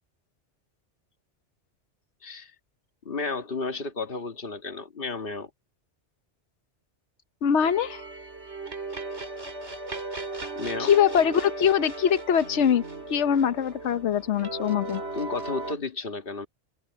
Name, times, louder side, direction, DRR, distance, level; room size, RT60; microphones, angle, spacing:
voice 1, 3.1-5.5 10.1-10.3 10.6-10.9 15.2-16.5, left 3 dB, 50° left, 2.0 m, -33 dB
voice 2, 7.4-8.0 10.8-12.8 13.1-15.0, left 8 dB, 80° left, 1.1 m, -23 dB
sound 1, 7.6-15.7, right 3 dB, 75° right, 5.6 m, -36 dB
omnidirectional pair, 1.2 m